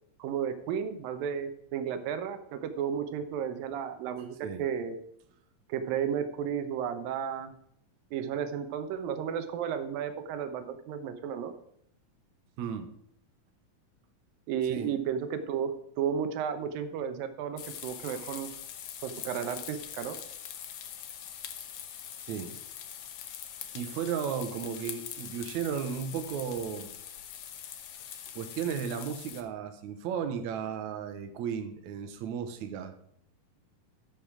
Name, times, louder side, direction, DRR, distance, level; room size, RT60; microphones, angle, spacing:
voice 1, 0.2-5.0 5.7-7.5 8.1-11.5 14.5-18.5 19.0-20.2, right 8 dB, 85° right, 9 dB, 2.7 m, -33 dB
voice 2, 12.6-12.9 14.7-14.9 18.0-18.3 22.3-22.6 23.7-26.9 28.4-32.9, right 7 dB, 65° right, 7 dB, 2.2 m, -34 dB
sound 1, 17.6-29.4, left 9 dB, 70° left, 1.5 m, -43 dB
12.0 x 6.2 x 4.8 m, 0.71 s
omnidirectional pair, 3.9 m